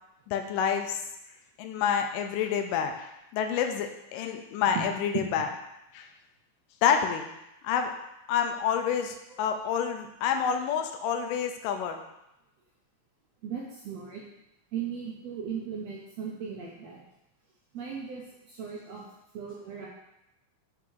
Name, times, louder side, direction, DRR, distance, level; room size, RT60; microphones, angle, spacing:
voice 1, 0.3-1.0 1.6-5.5 5.9-6.1 6.8-7.3 7.6-7.9 8.3-12.0, left 7 dB, 90° left, 6 dB, 2.2 m, -28 dB
voice 2, 13.4-14.2 14.7-17.0 17.7-19.1 19.3-19.9, right 7 dB, 75° right, -3 dB, 1.6 m, -37 dB
6.1 x 3.7 x 4.6 m, 0.88 s
omnidirectional pair, 3.7 m